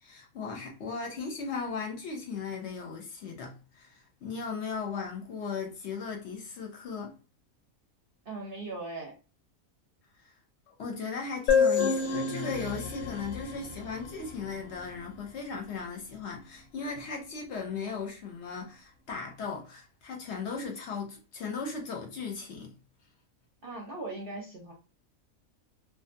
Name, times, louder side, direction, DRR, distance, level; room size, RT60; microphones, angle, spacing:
voice 1, 0.0-7.2 10.2-10.3 10.7-22.7, left 5 dB, 60° left, 0.8 m, -37 dB
voice 2, 8.3-9.1 23.6-24.7, right 2 dB, 55° right, 0.7 m, -39 dB
sound 1, 11.5-15.0, left 5 dB, 90° left, 1.1 m, -29 dB
2.6 x 2.2 x 2.5 m
omnidirectional pair, 1.4 m